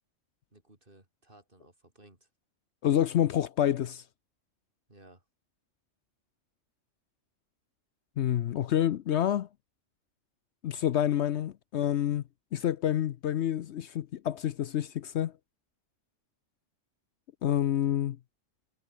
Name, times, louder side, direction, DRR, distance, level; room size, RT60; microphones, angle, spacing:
voice 1, 0.5-2.3 4.9-5.2, right 2 dB, 45° right, 4.8 m, -58 dB
voice 2, 2.8-4.0 8.2-9.5 10.6-12.2 12.5-15.3 17.4-18.2, left 11 dB, 65° left, 0.9 m, -28 dB
omnidirectional pair, 1.3 m